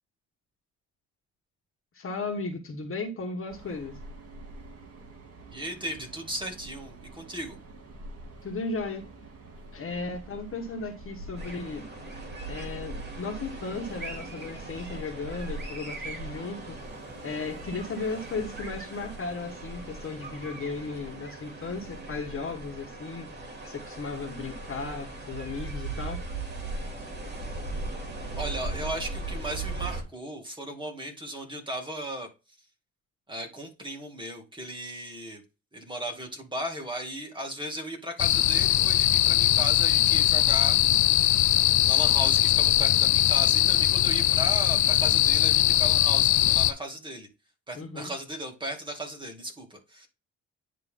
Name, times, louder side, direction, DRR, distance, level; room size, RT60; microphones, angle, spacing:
voice 1, 2.0-4.0 8.4-9.0 9.7-11.9 12.5-16.8 17.2-23.3 23.6-26.2 47.8-48.1, left 4 dB, 45° left, 1.8 m, -35 dB
Train, 3.5-23.0, right 2 dB, 50° right, 2.1 m, -45 dB
voice 2, 5.5-7.6 28.4-32.3 33.3-35.4 35.7-41.2 41.9-47.3 47.7-50.1, right 1 dB, 15° right, 2.3 m, -36 dB
sound 1, 11.4-30.0, right 3 dB, 35° right, 2.7 m, -39 dB
sound 2, 38.2-46.7, left 13 dB, 70° left, 0.6 m, -21 dB
10.0 x 3.4 x 3.6 m
cardioid pair, 90°, 30 cm